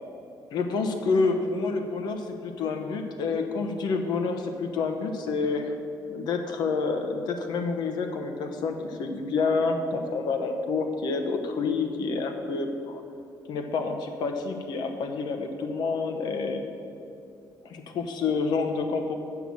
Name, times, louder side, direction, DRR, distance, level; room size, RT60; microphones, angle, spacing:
voice 1, 0.5-5.7 6.1-13.0 13.5-16.6 17.6-19.2, left 4 dB, 75° left, 5 dB, 0.9 m, -28 dB
7.2 x 5.9 x 7.4 m, 2.7 s
cardioid pair, 155°, 7 cm